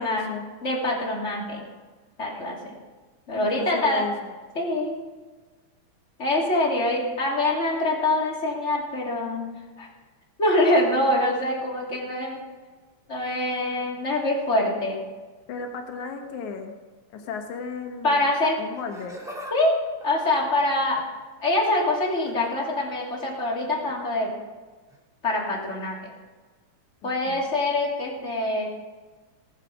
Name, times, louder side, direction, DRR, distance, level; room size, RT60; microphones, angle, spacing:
voice 1, 0.0-0.5 3.3-4.3 15.5-16.7 17.1-18.3 18.6-19.2 27.0-27.4, left 5 dB, 80° left, 4 dB, 2.7 m, -34 dB
voice 2, 0.6-1.6 2.2-2.8 3.3-4.0 4.5-4.9 6.2-9.4 9.8-9.9 10.4-12.4 13.1-15.0 18.0-18.6 19.5-19.8 20.0-21.0 21.4-24.3 25.2-26.1 27.0-28.7, left 1 dB, 25° left, -3 dB, 3.0 m, -24 dB
Laughter, 18.7-19.6 19.9-21.2 22.1-22.5 23.8-24.0 24.9-25.0, equal, ahead, 1.5 m, -42 dB
19.5 x 7.5 x 5.0 m, 1.3 s
omnidirectional pair, 3.4 m